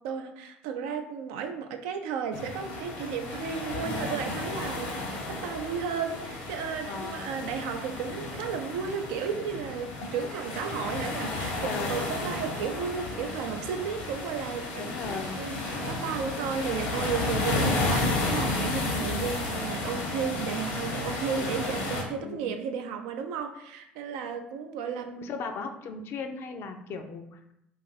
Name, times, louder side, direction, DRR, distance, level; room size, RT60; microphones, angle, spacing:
voice 1, 0.0-25.4, right 6 dB, 65° right, 6 dB, 0.4 m, -34 dB
sound 1, 2.3-22.0, left 2 dB, 70° left, 0.8 m, -32 dB
voice 2, 3.8-4.2 6.9-7.3 11.6-12.2 14.8-15.4 22.2-22.6 25.2-27.5, left 4 dB, 50° left, 6 dB, 0.4 m, -37 dB
2.5 x 2.5 x 3.9 m, 0.80 s
figure-of-eight pair, 60°, 5 cm